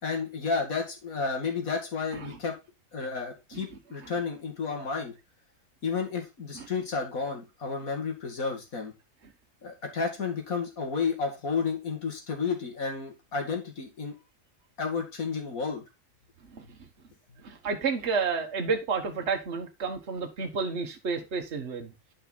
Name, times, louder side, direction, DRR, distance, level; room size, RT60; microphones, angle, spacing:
voice 1, 0.0-2.5 2.9-5.1 5.8-8.9 9.6-14.1 14.8-15.8, left 5 dB, 65° left, 2.6 m, -31 dB
voice 2, 17.4-22.1, right 5 dB, 50° right, 1.6 m, -31 dB
9.2 x 5.5 x 4.1 m
omnidirectional pair, 1.6 m